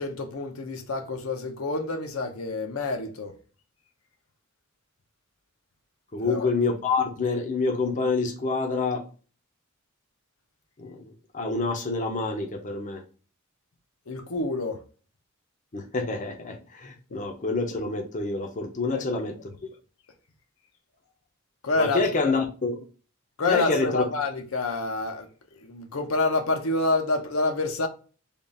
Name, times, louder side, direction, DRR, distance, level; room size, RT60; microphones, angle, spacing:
voice 1, 0.0-3.3 6.2-6.5 14.1-14.8 18.9-19.2 21.6-22.3 23.4-25.3 25.6-27.9, left 3 dB, 75° left, 0.7 m, -28 dB
voice 2, 6.1-9.0 10.8-13.0 15.7-19.4 21.8-22.8 23.5-24.1, left 3 dB, 35° left, 0.6 m, -27 dB
3.6 x 2.4 x 3.8 m
head